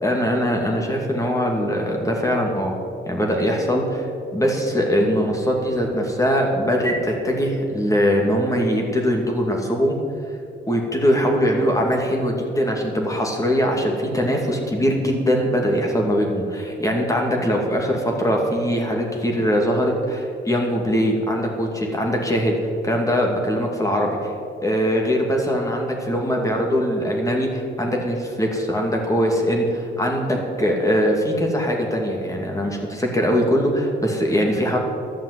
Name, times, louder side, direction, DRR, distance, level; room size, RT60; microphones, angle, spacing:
voice 1, 0.0-2.7 3.1-4.1 4.3-10.0 10.7-22.5 22.8-24.1 24.6-34.8, equal, 15° left, 0 dB, 2.3 m, -21 dB
12.0 x 7.2 x 8.1 m, 2.4 s
cardioid pair, 90°, 20 cm